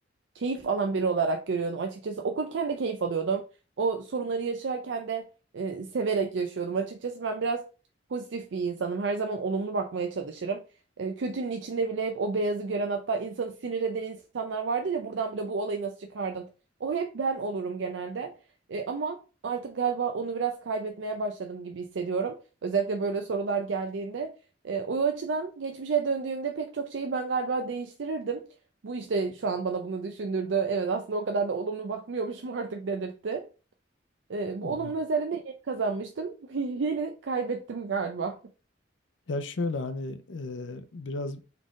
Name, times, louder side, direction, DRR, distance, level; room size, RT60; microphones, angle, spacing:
voice 1, 0.4-3.4 3.8-5.3 5.5-7.6 8.1-10.6 11.0-16.5 16.8-18.3 18.7-19.2 19.4-24.3 24.6-28.5 28.8-33.5 34.3-38.4, right 4 dB, 80° right, 0.5 m, -30 dB
voice 2, 34.6-34.9 39.3-41.4, left 3 dB, 85° left, 0.6 m, -34 dB
4.1 x 3.4 x 3.6 m
head